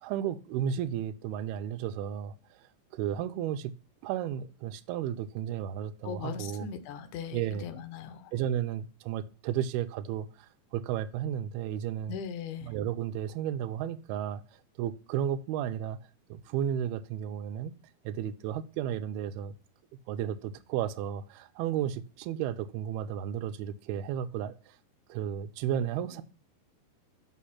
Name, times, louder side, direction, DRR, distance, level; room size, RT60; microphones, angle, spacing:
voice 1, 0.0-3.7 4.0-6.7 7.3-7.6 8.3-12.2 12.6-16.0 16.3-17.7 18.0-19.6 20.1-24.8 25.1-26.2, right 10 dB, 85° right, 2.5 m, -33 dB
voice 2, 6.0-8.3 12.1-12.7, left 7 dB, 70° left, 2.0 m, -39 dB
6.4 x 5.7 x 5.6 m
omnidirectional pair, 4.4 m